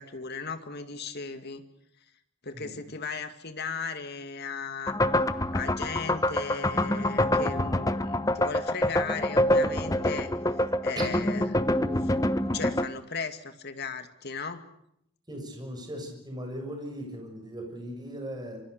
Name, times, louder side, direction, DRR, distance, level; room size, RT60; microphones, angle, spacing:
voice 1, 0.0-1.6 2.4-4.9 5.5-10.3 10.8-11.6 12.0-12.1 12.4-14.7, left 5 dB, 45° left, 8 dB, 2.3 m, -36 dB
sound 1, 4.9-12.9, left 1 dB, 15° left, 0.9 m, -26 dB
voice 2, 15.3-18.6, equal, 20° right, 3 dB, 6.9 m, -38 dB
27.0 x 24.5 x 6.8 m, 0.76 s
head